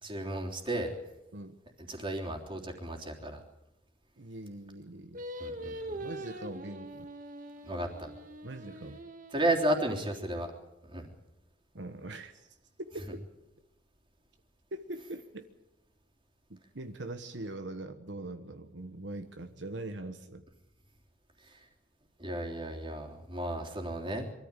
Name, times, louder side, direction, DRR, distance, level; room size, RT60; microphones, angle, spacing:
voice 1, 0.0-0.9 1.8-3.4 5.4-6.0 7.6-8.1 9.3-10.5 10.9-11.1 21.4-21.6 22.2-24.3, right 1 dB, 30° right, 1 dB, 3.4 m, -33 dB
voice 2, 4.2-5.2 6.0-7.1 8.4-9.0 11.7-12.5 12.8-13.3 14.7-15.5 16.5-20.5, right 2 dB, 75° right, 7 dB, 1.3 m, -42 dB
Singing, 5.1-10.4, right 1 dB, 50° right, 1.8 m, -43 dB
24.0 x 13.5 x 9.0 m, 0.93 s
head